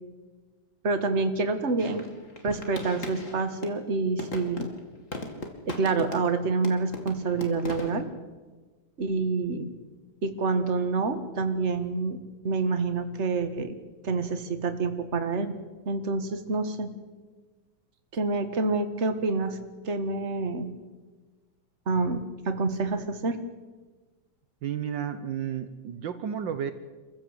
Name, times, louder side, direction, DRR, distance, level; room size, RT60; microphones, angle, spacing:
voice 1, 0.8-2.1 2.4-4.7 5.7-8.1 9.0-9.7 10.2-12.2 12.4-13.8 14.0-15.6 15.9-16.9 18.1-19.6 19.8-20.7 21.9-23.4, right 3 dB, 35° right, 8 dB, 1.8 m, -27 dB
sound 1, 1.8-3.8 4.2-6.4 6.6-8.0, left 2 dB, 40° left, 2.9 m, -38 dB
voice 2, 24.6-26.7, right 8 dB, 70° right, 10 dB, 1.7 m, -32 dB
26.5 x 15.0 x 8.1 m, 1.3 s
omnidirectional pair, 2.1 m